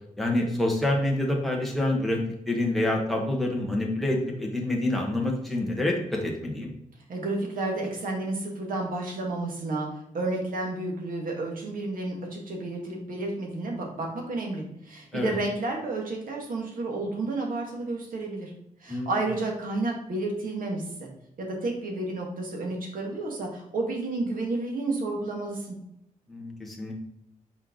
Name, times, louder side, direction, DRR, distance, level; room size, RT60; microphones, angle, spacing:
voice 1, 0.2-2.2 2.5-6.7 15.1-15.3 18.9-19.2 26.3-26.9, left 1 dB, ahead, -1 dB, 1.4 m, -27 dB
voice 2, 7.1-9.9 10.1-18.5 18.8-21.1 21.4-25.8, right 2 dB, 85° right, 0 dB, 1.9 m, -31 dB
5.8 x 4.6 x 3.8 m, 0.80 s
wide cardioid pair, 165°, 14 cm